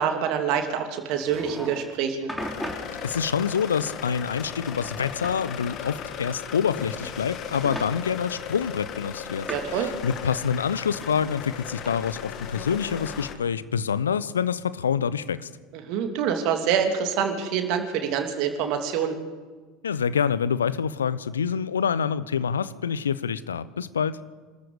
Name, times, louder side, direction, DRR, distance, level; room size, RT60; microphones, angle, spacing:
voice 1, 0.0-2.3 9.5-9.9 15.7-19.2, right 7 dB, 55° right, 5 dB, 2.8 m, -26 dB
sound 1, 1.1-1.9 2.3-2.9 3.7-4.4 4.7-5.4 6.6-7.2 7.5-7.9 8.7-9.8 11.0-11.9, equal, 5° left, 3.6 m, -38 dB
sound 2, 2.4-13.4, left 8 dB, 45° left, 1.9 m, -37 dB
voice 2, 3.0-15.5 19.8-24.2, left 7 dB, 75° left, 17 dB, 0.7 m, -26 dB
25.5 x 13.5 x 8.4 m, 1.4 s
figure-of-eight pair, 70°, 0 cm